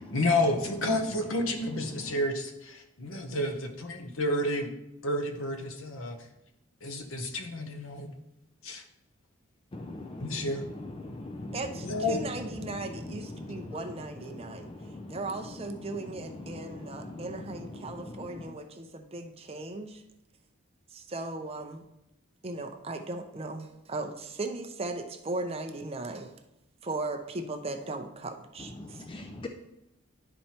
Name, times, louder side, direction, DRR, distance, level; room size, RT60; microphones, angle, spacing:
voice 1, 0.1-4.7 5.0-6.2 6.8-8.1 8.6-8.8 10.2-10.6 11.8-12.2, left 1 dB, 75° left, 5 dB, 0.9 m, -30 dB
voice 2, 9.7-10.5 10.7-11.6 13.4-13.9 14.5-15.2 16.5-17.3 17.8-18.5 28.8-29.5, left 2 dB, 25° left, 5 dB, 0.4 m, -42 dB
voice 3, 11.5-14.7 15.1-20.0 20.9-21.8 22.4-26.3 26.8-29.0, right 2 dB, 30° right, 4 dB, 0.5 m, -37 dB
11.0 x 4.4 x 2.9 m, 0.88 s
head